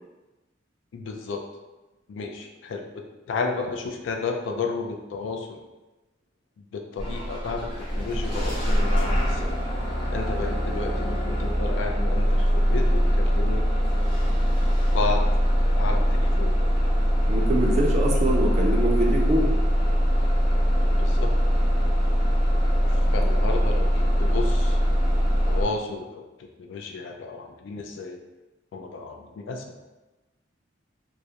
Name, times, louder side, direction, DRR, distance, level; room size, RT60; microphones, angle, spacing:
voice 1, 0.9-1.4 2.1-5.6 6.7-9.5 10.1-13.6 14.9-15.2 15.6-16.6 20.8-21.3 22.9-24.8 25.2-26.3 26.6-28.2 28.7-29.7, left 4 dB, 70° left, 3 dB, 0.3 m, -32 dB
Bus / Engine starting, 7.0-25.7, equal, 25° left, 0.6 m, -22 dB
voice 2, 17.3-19.6, right 1 dB, 35° right, 0 dB, 0.3 m, -24 dB
2.3 x 2.0 x 2.7 m, 1.1 s
head